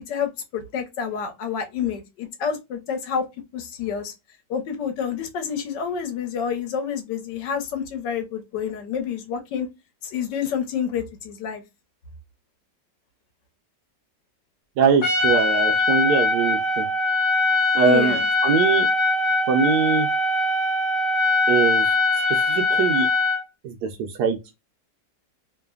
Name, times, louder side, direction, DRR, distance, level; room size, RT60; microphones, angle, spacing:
voice 1, 0.0-3.2 3.5-4.1 4.5-9.7 10.1-11.6 17.8-18.3, left 7 dB, 75° left, 1.4 m, -28 dB
voice 2, 14.8-16.9 17.7-18.9 19.5-20.1 21.5-21.9 22.3-23.1 23.6-24.4, right 6 dB, 75° right, 1.0 m, -22 dB
Trumpet, 15.0-23.4, left 3 dB, 50° left, 0.6 m, -21 dB
3.2 x 2.1 x 2.2 m
omnidirectional pair, 2.0 m